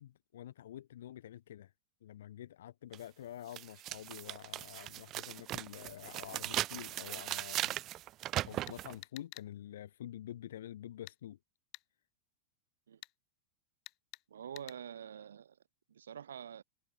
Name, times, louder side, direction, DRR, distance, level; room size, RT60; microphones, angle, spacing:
voice 1, 0.0-1.7 2.0-7.7 8.4-11.4, left 11 dB, 60° left, 0.4 m, -48 dB
sound 1, 2.9-3.0 3.5-8.9, right 14 dB, 35° right, 0.5 m, -38 dB
sound 2, 8.7-9.5 11.1-11.2 11.7-11.9 13.0-13.1 13.9-14.2 14.6-14.8, left 22 dB, 40° left, 1.7 m, -50 dB
voice 2, 14.3-15.6 15.9-16.6, right 8 dB, 65° right, 1.6 m, -46 dB
figure-of-eight pair, 90°, 0 cm